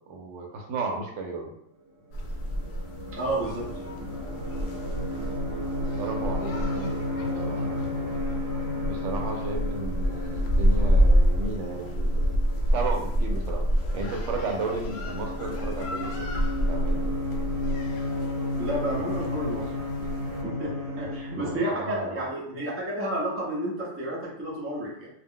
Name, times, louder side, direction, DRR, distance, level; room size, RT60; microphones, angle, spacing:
voice 1, 0.1-1.5 6.0-7.9 8.8-12.4 12.7-13.6 13.9-16.3 16.6-17.0 21.3-22.2, right 3 dB, 80° right, 2 dB, 0.9 m, -34 dB
sound 1, 2.1-20.4, equal, 65° left, 0.8 m, -28 dB
sound 2, 2.1-21.6, left 2 dB, 50° right, 0.9 m, -33 dB
voice 2, 3.1-3.7 18.6-19.7 20.0-20.1 20.4-25.1, right 1 dB, 15° right, -4 dB, 0.5 m, -31 dB
2.4 x 2.0 x 3.6 m, 0.76 s
omnidirectional pair, 1.2 m